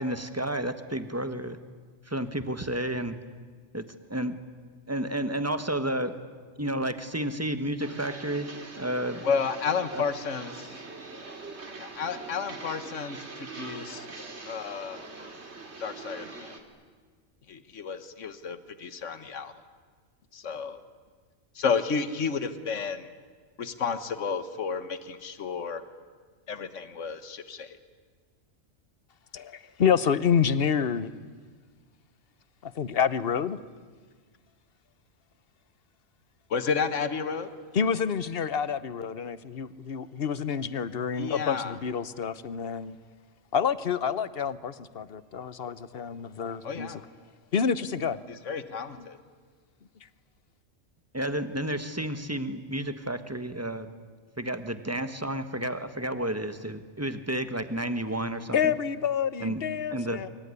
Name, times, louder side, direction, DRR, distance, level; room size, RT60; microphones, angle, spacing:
voice 1, 0.0-1.6 2.1-3.2 3.7-4.4 4.9-6.2 6.6-8.5 8.8-9.2 9.9-10.0 51.1-53.9 54.4-58.8 59.4-59.6 59.9-60.2, right 1 dB, 10° right, 10 dB, 1.4 m, -31 dB
sound 1, 7.8-16.6, right 3 dB, 60° right, 2.7 m, -43 dB
voice 2, 9.2-10.7 11.8-14.1 14.4-15.0 15.8-16.6 17.5-19.5 20.3-20.8 21.5-23.1 23.6-25.8 26.5-27.8 36.5-37.5 41.2-41.8 46.6-47.0 48.4-49.2, left 5 dB, 75° left, 11 dB, 1.7 m, -31 dB
voice 3, 29.3-31.1 32.6-33.6 37.7-43.0 43.5-46.9 47.5-48.2 58.5-60.3, left 7 dB, 50° left, 15 dB, 1.1 m, -28 dB
25.0 x 24.0 x 9.8 m, 1.5 s
omnidirectional pair, 1.3 m